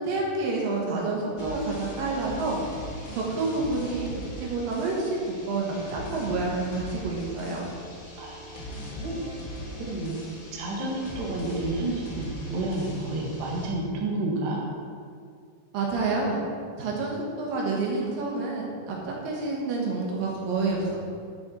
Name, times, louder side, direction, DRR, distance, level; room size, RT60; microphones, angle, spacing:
voice 1, 0.0-2.6 3.1-4.1 4.4-7.7 15.7-16.4 16.8-21.0, right 3 dB, 85° right, -3 dB, 3.2 m, -28 dB
sound 1, 1.4-13.7, equal, 80° left, 0.7 m, -40 dB
voice 2, 8.2-9.2 9.8-10.2 10.5-14.6, right 2 dB, 45° right, -3 dB, 1.8 m, -30 dB
10.5 x 6.4 x 4.4 m, 2.2 s
omnidirectional pair, 3.9 m